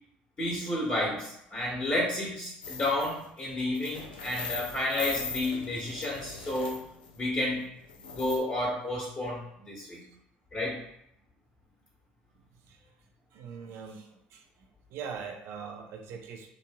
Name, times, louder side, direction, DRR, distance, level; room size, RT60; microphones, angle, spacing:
voice 1, 0.4-6.8 7.2-7.6 8.1-10.0 10.5-10.8, left 1 dB, 30° left, -6 dB, 1.3 m, -31 dB
sound 1, 2.6-3.2 3.6-7.2 7.9-8.4, left 5 dB, 90° left, 0.4 m, -40 dB
voice 2, 13.3-14.4 14.9-16.5, right 6 dB, 65° right, 3 dB, 0.5 m, -41 dB
2.9 x 2.6 x 2.2 m, 0.73 s
hypercardioid pair, 65°, 5 cm